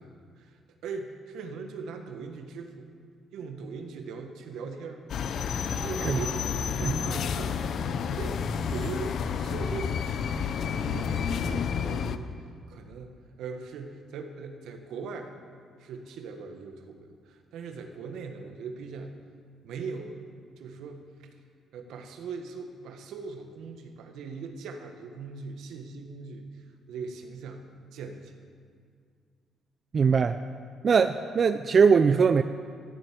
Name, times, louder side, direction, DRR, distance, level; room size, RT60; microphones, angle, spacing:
voice 1, 0.0-2.9 3.3-5.0 5.7-12.3 12.7-15.4 15.8-19.2 19.6-20.2 20.6-21.3 21.7-28.4, right 4 dB, 80° right, 5 dB, 1.4 m, -40 dB
sound 1, 5.1-12.2, left 6 dB, 65° left, 0.7 m, -30 dB
voice 2, 29.9-30.4 30.8-32.4, right 5 dB, 45° right, 10 dB, 0.5 m, -21 dB
14.0 x 7.5 x 8.3 m, 2.1 s
cardioid pair, 90°, 0 cm